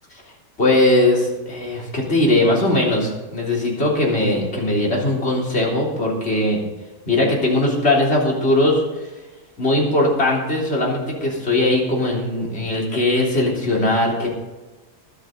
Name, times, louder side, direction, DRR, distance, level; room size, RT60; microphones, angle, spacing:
voice 1, 0.6-6.6 7.1-8.8 9.6-14.3, left 1 dB, 40° left, -3 dB, 3.7 m, -19 dB
22.0 x 8.1 x 3.9 m, 1.2 s
omnidirectional pair, 1.6 m